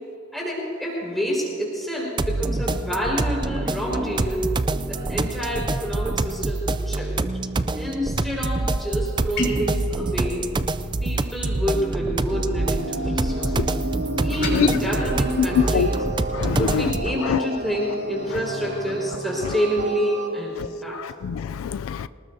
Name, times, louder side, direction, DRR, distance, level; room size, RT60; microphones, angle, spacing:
voice 1, 0.3-4.4 4.8-7.1 7.7-10.5 11.0-13.8 14.2-16.0 16.6-21.0, equal, ahead, -4 dB, 4.8 m, -28 dB
sound 1, 2.2-17.2, right 2 dB, 20° right, 0.4 m, -26 dB
sound 2, 9.3-9.7 14.3-14.6, left 1 dB, 50° left, 3.9 m, -27 dB
sound 3, 12.3-20.3, right 1 dB, 55° right, 1.6 m, -32 dB
voice 2, 15.4-15.9 16.4-16.8 17.3-17.4 21.0-22.1, left 7 dB, 85° left, 14 dB, 0.3 m, -23 dB
26.5 x 19.0 x 2.7 m, 2.9 s
head